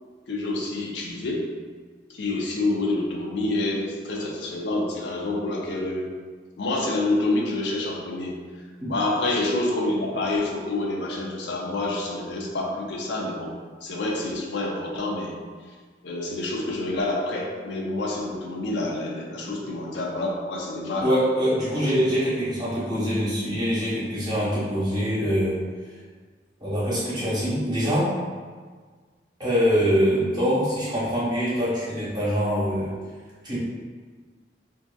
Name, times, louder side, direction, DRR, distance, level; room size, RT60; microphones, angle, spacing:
voice 1, 0.3-1.4 2.1-6.1 6.6-8.3 8.9-13.5 13.8-15.4 16.0-21.1 21.8-22.0, left 2 dB, 75° left, -2 dB, 0.4 m, -27 dB
voice 2, 21.0-25.6 26.6-28.1 29.4-32.9 33.4-33.6, equal, 25° right, -10 dB, 0.9 m, -24 dB
2.6 x 2.4 x 2.2 m, 1.5 s
head